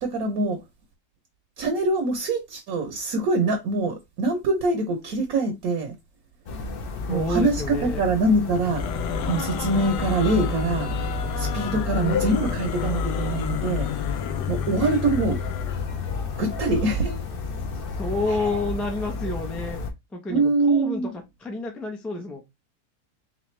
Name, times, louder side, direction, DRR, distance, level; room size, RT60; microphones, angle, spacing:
voice 1, 0.0-0.6 1.6-5.9 7.1-8.8 9.2-10.9 11.4-13.9 14.5-15.4 16.4-17.2 18.3-18.4 20.3-21.1, right 2 dB, 70° right, 1.2 m, -24 dB
sound 1, 6.5-19.9, left 4 dB, 60° left, 0.6 m, -30 dB
voice 2, 7.1-8.0 18.0-19.8 20.1-21.0 21.4-22.4, left 2 dB, ahead, 0.4 m, -29 dB
sound 2, 8.5-15.9, left 9 dB, 85° left, 1.2 m, -32 dB
3.6 x 3.3 x 3.1 m
omnidirectional pair, 1.7 m